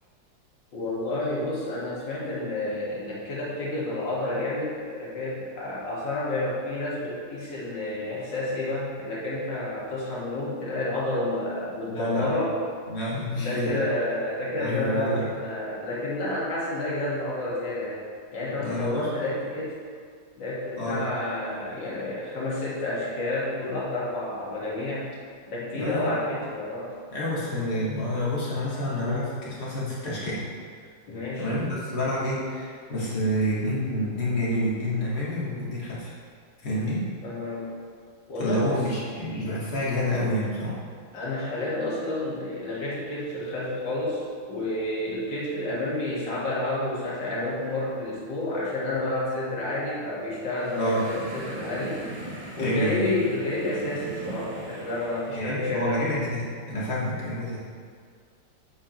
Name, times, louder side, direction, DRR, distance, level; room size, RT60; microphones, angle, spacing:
voice 1, 0.7-12.6 13.3-18.0 18.3-19.7 20.4-25.1 25.5-26.9 31.1-31.5 37.2-37.7 38.3-38.8 41.1-52.0 52.6-56.1, left 1 dB, 80° left, -7 dB, 2.5 m, -30 dB
voice 2, 11.9-12.2 12.9-13.8 14.6-15.2 18.6-19.1 20.8-21.0 25.7-26.1 27.1-30.4 31.4-36.1 36.6-37.1 38.4-40.8 50.8-51.0 52.6-53.1 55.3-57.6, equal, 55° left, -8 dB, 2.3 m, -28 dB
sound 1, 50.4-55.5, right 2 dB, 40° right, 0.3 m, -40 dB
7.8 x 7.4 x 3.0 m, 2.1 s
omnidirectional pair, 2.0 m